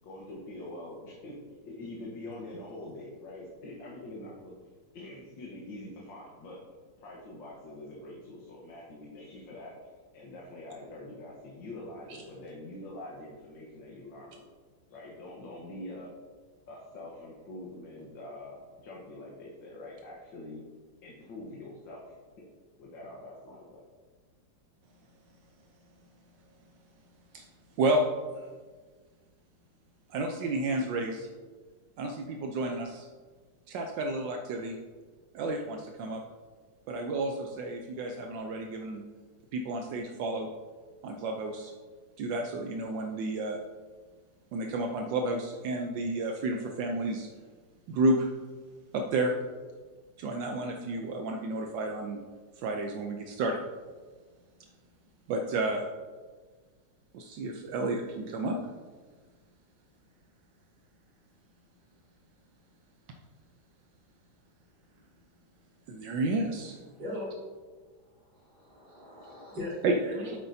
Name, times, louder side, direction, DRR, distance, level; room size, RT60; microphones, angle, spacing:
voice 1, 0.0-1.3 1.6-6.6 7.0-9.7 10.1-14.5 14.9-16.1 16.7-20.6 21.0-22.2 22.8-23.9, left 1 dB, 85° left, -4 dB, 2.0 m, -44 dB
voice 2, 30.1-31.3 32.0-33.1 33.7-34.8 35.3-36.2 36.9-39.0 39.5-40.5 41.0-41.7 42.2-43.6 44.5-47.3 47.9-48.3 48.9-49.4 50.2-52.2 52.6-53.6 55.3-55.8 57.1-58.6 65.9-66.8 69.8-70.0, right 2 dB, 80° right, 2 dB, 1.3 m, -31 dB
voice 3, 68.3-70.4, left 1 dB, 60° right, -7 dB, 3.4 m, -39 dB
9.8 x 8.0 x 2.7 m, 1.5 s
omnidirectional pair, 2.0 m